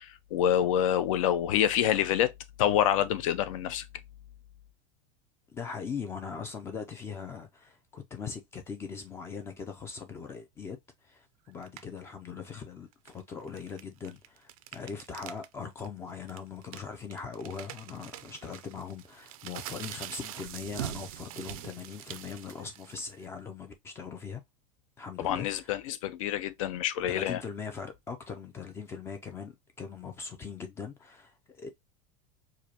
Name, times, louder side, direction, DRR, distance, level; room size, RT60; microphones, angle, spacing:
voice 1, 0.0-2.3 2.6-3.9 25.2-27.4, left 10 dB, 70° left, 0.6 m, -27 dB
voice 2, 5.5-10.8 11.0-24.4 25.0-25.7 27.1-31.7, left 6 dB, 15° left, 0.4 m, -40 dB
sound 1, 11.6-12.0 12.9-15.5 15.8-15.9 16.3-23.2, right 13 dB, 85° right, 0.5 m, -43 dB
4.8 x 2.2 x 2.8 m
supercardioid pair, 165°, 18 cm